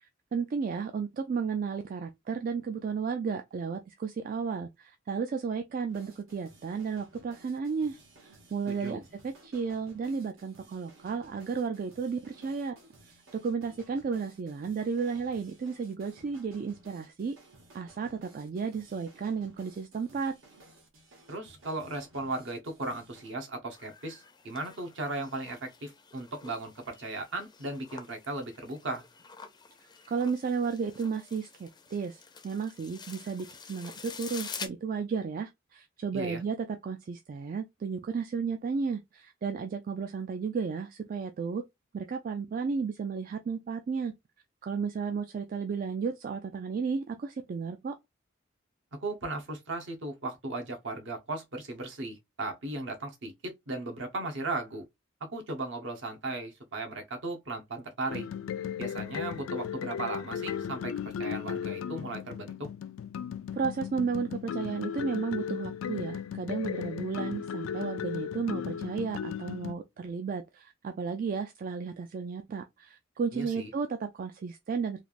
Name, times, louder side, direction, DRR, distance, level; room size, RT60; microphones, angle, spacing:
voice 1, 0.0-12.8 13.4-17.3 17.7-20.3 30.1-41.6 41.9-44.1 44.6-47.9 63.5-75.0, right 5 dB, 45° right, 0.3 m, -33 dB
sound 1, 5.9-23.3, right 2 dB, 85° right, 1.2 m, -57 dB
voice 2, 8.7-9.0 21.3-29.0 36.1-36.4 49.0-54.8 55.3-58.3 58.8-60.9 61.2-62.7 73.3-73.7, right 2 dB, 65° right, 0.9 m, -36 dB
sound 2, 23.7-34.7, left 5 dB, 20° left, 0.4 m, -47 dB
sound 3, 58.1-69.7, left 8 dB, 90° left, 0.3 m, -36 dB
3.2 x 2.4 x 2.4 m
head